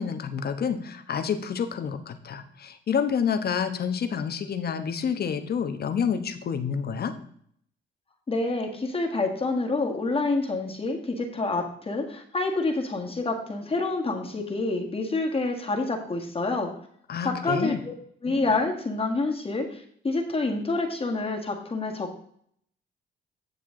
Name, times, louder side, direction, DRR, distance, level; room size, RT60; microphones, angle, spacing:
voice 1, 0.0-7.1 17.1-17.8, left 7 dB, 50° left, 8 dB, 1.1 m, -28 dB
voice 2, 8.3-16.7 17.2-17.9 18.2-22.2, left 3 dB, 30° left, 2 dB, 1.7 m, -28 dB
9.7 x 6.8 x 3.8 m, 0.64 s
cardioid pair, 90°, 20 cm